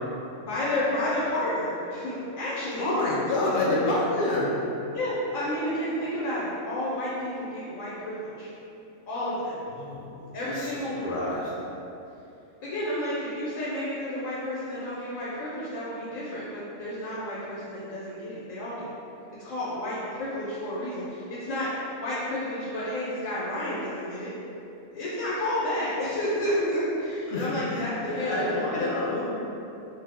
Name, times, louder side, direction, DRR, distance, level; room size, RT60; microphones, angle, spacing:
voice 1, 0.3-2.9 3.4-3.8 4.9-8.5 9.1-9.6 10.3-11.1 12.6-18.9 19.4-21.7 22.0-24.3 24.9-28.9, left 1 dB, 85° left, -9 dB, 1.1 m, -31 dB
voice 2, 2.8-4.5 9.7-10.1 10.4-10.7 11.0-11.5 27.3-29.2, left 2 dB, 65° left, -5 dB, 0.5 m, -28 dB
2.7 x 2.1 x 3.4 m, 2.8 s
omnidirectional pair, 1.3 m